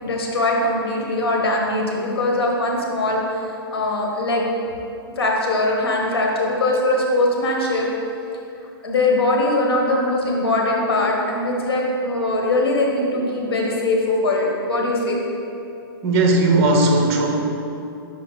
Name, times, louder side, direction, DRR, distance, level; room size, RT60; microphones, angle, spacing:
voice 1, 0.0-3.2 3.7-4.4 5.2-7.9 8.8-15.2, left 2 dB, 75° left, -1 dB, 1.3 m, -21 dB
voice 2, 16.0-17.4, right 2 dB, 40° right, 2 dB, 0.9 m, -17 dB
5.7 x 5.1 x 4.0 m, 2.7 s
hypercardioid pair, 150°, 13 cm